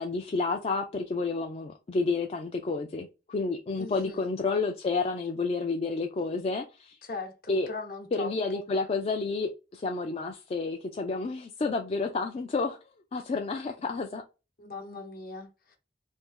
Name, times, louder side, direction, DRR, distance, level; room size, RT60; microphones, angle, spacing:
voice 1, 0.0-7.0 7.5-7.7 8.1-12.8 13.1-14.2, left 3 dB, 35° left, 0.3 m, -30 dB
voice 2, 3.8-4.2 7.0-8.6 14.6-15.8, left 3 dB, 55° left, 0.9 m, -40 dB
2.7 x 2.6 x 3.7 m
head